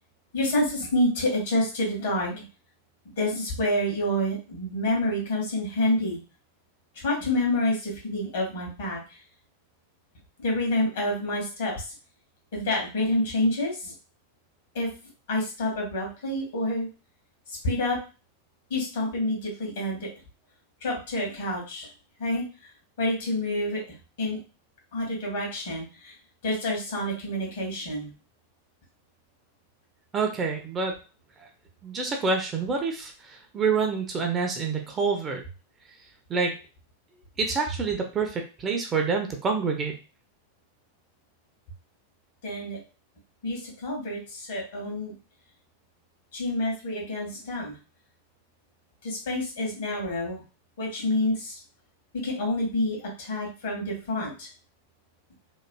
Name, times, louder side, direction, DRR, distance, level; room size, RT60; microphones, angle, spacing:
voice 1, 0.3-2.4 3.2-6.2 7.0-9.0 10.4-11.7 12.5-13.9 14.7-14.9 15.3-16.9 17.6-18.0 18.7-20.1 20.8-21.9 22.2-22.4 23.0-23.8 24.2-24.4 24.9-26.1 26.4-28.1 42.4-42.8 43.4-45.1 46.3-47.8 49.0-50.4 50.8-51.6 52.2-54.5, left 1 dB, 55° left, -1 dB, 1.5 m, -28 dB
voice 2, 30.1-30.9 31.8-33.1 33.5-35.4 36.3-36.5 37.4-40.0, right 4 dB, 25° right, 3 dB, 0.6 m, -27 dB
3.1 x 2.5 x 2.2 m, 0.33 s
figure-of-eight pair, 90°, 0 cm